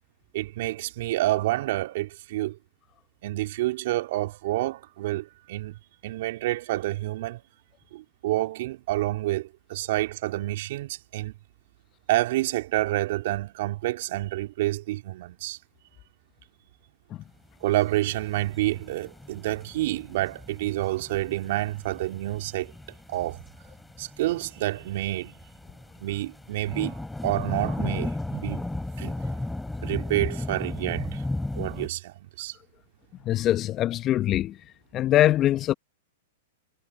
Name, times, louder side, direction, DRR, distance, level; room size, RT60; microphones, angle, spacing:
voice 1, 0.3-2.6 3.2-5.7 6.0-7.4 7.9-11.3 12.1-15.6 17.6-22.7 23.1-23.4 24.0-25.3 26.0-28.6 29.0-29.1 29.8-31.2 31.5-32.6, right 16 dB, 60° right, 3.0 m, -28 dB
sound 1, 17.6-31.9, left 2 dB, 5° left, 6.7 m, -35 dB
voice 2, 33.2-34.6 34.9-35.7, left 13 dB, 35° left, 0.9 m, -22 dB
hypercardioid pair, 115°, 0 cm